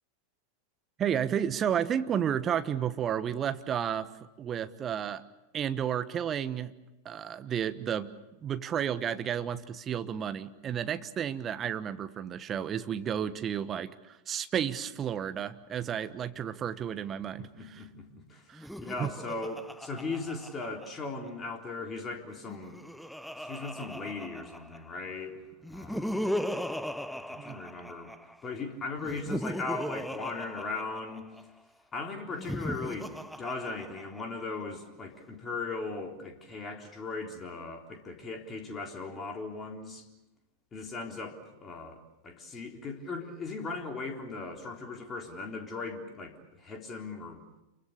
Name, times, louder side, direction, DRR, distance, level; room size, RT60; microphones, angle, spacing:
voice 1, 1.0-4.1 4.4-5.2 5.5-6.7 7.0-8.1 8.4-17.8 18.5-18.7 19.0-19.1 27.4-27.6, right 9 dB, 25° right, 11 dB, 1.3 m, -32 dB
voice 2, 17.4-18.4 18.8-22.8 23.4-26.3 27.3-28.1 28.4-31.2 31.9-40.0 40.7-47.4, left 3 dB, 20° left, 2 dB, 3.8 m, -38 dB
Laughter, 18.5-21.3 22.4-25.0 25.6-28.4 29.0-31.4 32.3-34.4, equal, ahead, 0.8 m, -38 dB
28.5 x 24.0 x 6.8 m, 0.99 s
figure-of-eight pair, 90°, 0 cm